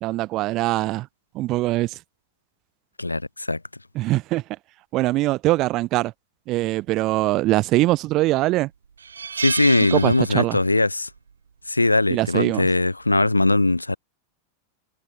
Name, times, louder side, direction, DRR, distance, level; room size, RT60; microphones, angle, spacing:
voice 1, 0.0-1.1 1.3-2.0 3.9-4.4 4.9-6.1 6.5-8.7 9.8-10.6 12.1-12.7, right 18 dB, 40° right, 0.9 m, -22 dB
voice 2, 3.0-3.6 9.4-11.1 11.7-14.0, left 2 dB, 85° left, 0.5 m, -20 dB
sound 1, 7.6-8.1 8.5-8.6 9.0-10.8 11.1-11.3 12.6-12.9, right 6 dB, 70° right, 0.5 m, -32 dB
figure-of-eight pair, 90°, 0 cm